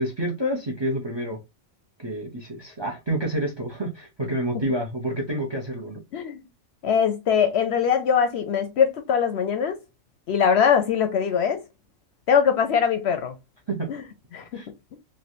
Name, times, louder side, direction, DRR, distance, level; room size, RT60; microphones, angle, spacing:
voice 1, 0.0-1.4 2.0-6.0 13.7-13.9 14.5-14.7, right 1 dB, 30° right, 0.5 m, -28 dB
voice 2, 6.8-9.8 10.3-11.6 12.3-13.3 13.9-14.0 14.3-14.6, left 7 dB, 65° left, 0.7 m, -22 dB
3.3 x 2.5 x 2.6 m
omnidirectional pair, 1.3 m